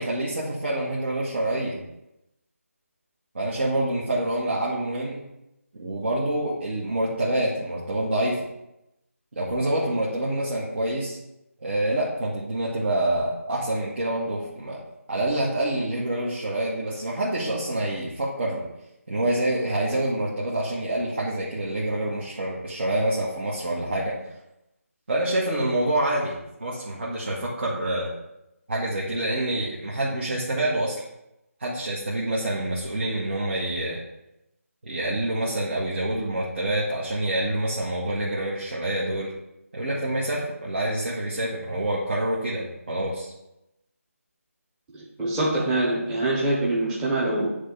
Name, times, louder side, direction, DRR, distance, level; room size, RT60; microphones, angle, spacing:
voice 1, 0.0-1.8 3.3-5.2 5.8-8.4 9.3-11.2 11.6-14.8 15.1-18.6 19.1-24.1 25.1-26.3 26.6-28.1 28.7-31.0 31.6-34.0 34.8-39.3 39.7-43.3, right 1 dB, 50° right, -6 dB, 1.8 m, -27 dB
voice 2, 44.9-47.5, right 2 dB, 10° right, -6 dB, 1.2 m, -24 dB
10.0 x 3.5 x 5.5 m, 0.89 s
figure-of-eight pair, 160°, 8 cm